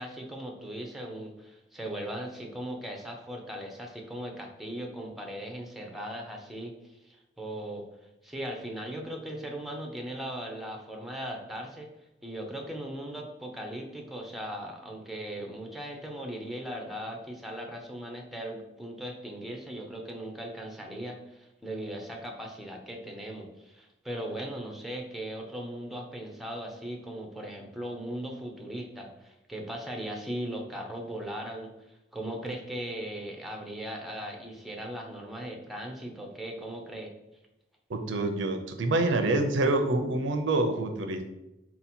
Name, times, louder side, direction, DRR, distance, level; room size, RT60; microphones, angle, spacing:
voice 1, 0.0-7.9 8.2-11.9 12.2-37.1, right 1 dB, ahead, 1 dB, 0.6 m, -38 dB
voice 2, 37.9-41.3, right 2 dB, 75° right, 6 dB, 0.6 m, -26 dB
4.1 x 2.8 x 4.2 m, 0.92 s
head